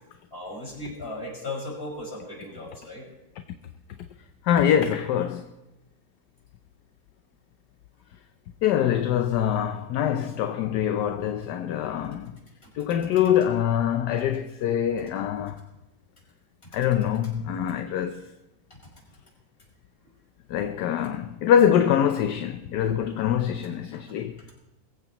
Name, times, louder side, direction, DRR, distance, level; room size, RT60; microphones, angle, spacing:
voice 1, 0.3-3.1 11.9-12.3 12.6-12.7 15.6-15.7 16.6-16.8 17.9-18.0 18.7-18.8 24.1-24.5, left 2 dB, 30° left, 5.8 m, -38 dB
voice 2, 4.4-5.5 8.6-12.3 12.7-15.6 16.7-18.3 20.5-24.5, left 9 dB, 70° left, 1.2 m, -24 dB
22.0 x 15.5 x 3.0 m
omnidirectional pair, 2.1 m